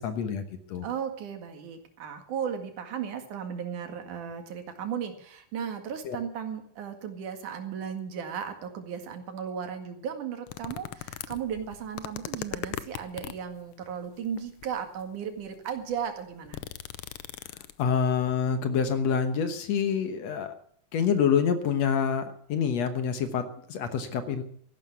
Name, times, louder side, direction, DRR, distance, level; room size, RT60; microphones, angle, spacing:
voice 1, 0.0-0.9 6.0-6.2 17.8-20.5 20.9-24.4, left 7 dB, 65° left, 9 dB, 2.1 m, -27 dB
voice 2, 0.8-16.6, right 7 dB, 75° right, 6 dB, 3.4 m, -35 dB
sound 1, 10.5-13.5 14.3-14.9 15.4-15.5 15.8-18.0 18.3-18.4, left 12 dB, 80° left, 1.3 m, -39 dB
14.5 x 11.5 x 8.2 m, 0.64 s
omnidirectional pair, 3.6 m